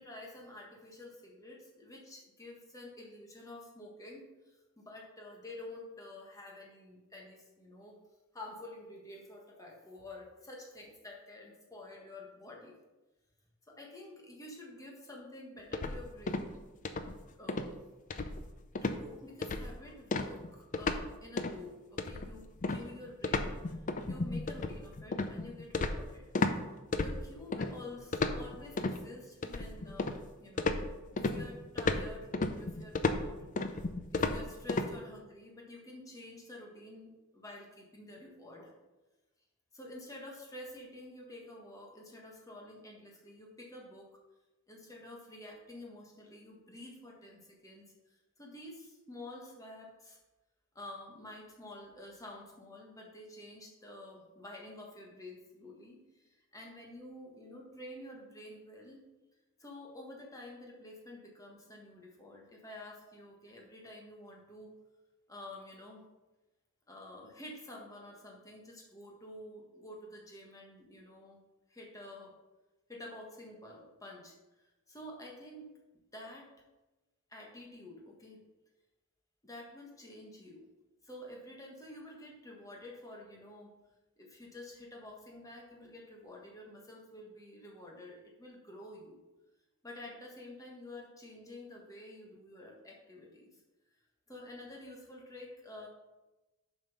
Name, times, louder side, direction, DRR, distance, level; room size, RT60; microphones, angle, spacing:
voice 1, 0.0-8.0 8.3-12.8 13.7-16.5 17.4-17.7 18.8-26.3 27.0-30.8 31.1-33.8 34.1-38.7 39.7-44.1 44.7-50.2 50.7-59.0 59.6-64.7 65.3-66.0 66.9-71.4 71.7-72.3 72.9-75.7 76.1-76.5 77.3-78.4 79.4-80.7 81.0-83.7 84.2-89.2 89.8-93.5 94.3-95.9, left 1 dB, 15° left, -2 dB, 1.5 m, -49 dB
sound 1, 15.7-16.6 16.8-17.2 17.5-17.7 18.1-18.5 18.8-19.0 19.4-19.8 20.1-21.1 21.4-21.6 22.0-26.6 26.9-27.7 28.1-29.0 29.4-30.3 30.6-34.9, left 3 dB, 40° left, 0.5 m, -33 dB
7.3 x 5.3 x 5.4 m, 1.1 s
head